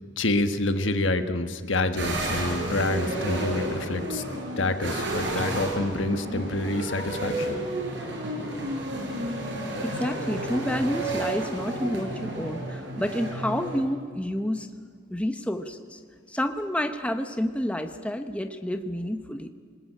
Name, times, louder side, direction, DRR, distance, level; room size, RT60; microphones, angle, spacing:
voice 1, 0.2-4.2 4.6-7.6, left 2 dB, 70° left, 9 dB, 1.5 m, -27 dB
sound 1, 2.0-13.8, right 1 dB, 60° right, 5.4 m, -31 dB
voice 2, 9.8-14.7 15.1-16.0 16.3-19.5, equal, 5° left, 7 dB, 0.9 m, -29 dB
27.0 x 20.0 x 8.8 m, 2.2 s
head